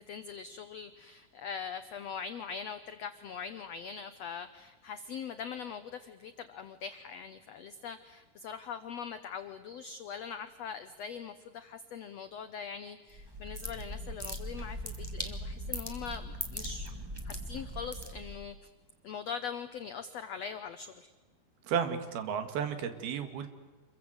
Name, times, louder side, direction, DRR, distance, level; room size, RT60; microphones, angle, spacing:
voice 1, 0.0-16.9 17.2-18.6 19.0-21.1, left 6 dB, 80° left, 10 dB, 1.4 m, -42 dB
sound 1, 13.1-18.5, equal, 10° right, 1.2 m, -40 dB
voice 2, 21.7-23.5, right 7 dB, 85° right, 9 dB, 3.8 m, -33 dB
27.5 x 22.5 x 7.9 m, 1.2 s
omnidirectional pair, 4.3 m